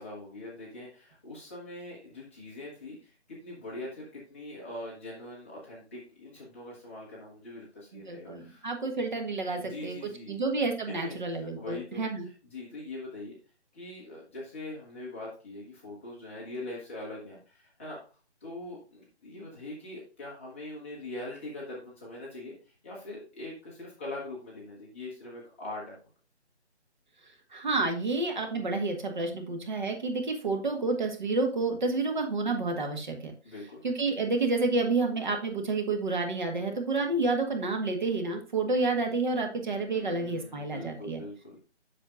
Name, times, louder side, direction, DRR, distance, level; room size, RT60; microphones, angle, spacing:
voice 1, 0.0-8.6 9.5-10.4 10.9-13.3 13.7-18.0 18.4-26.0 33.4-33.8 39.9-41.6, left 2 dB, 10° left, -6 dB, 1.0 m, -42 dB
voice 2, 7.9-10.0 10.3-12.2 27.5-33.3 33.8-41.2, right 3 dB, 40° right, 4 dB, 1.4 m, -29 dB
7.6 x 6.6 x 2.5 m, 0.36 s
figure-of-eight pair, 165°, 34 cm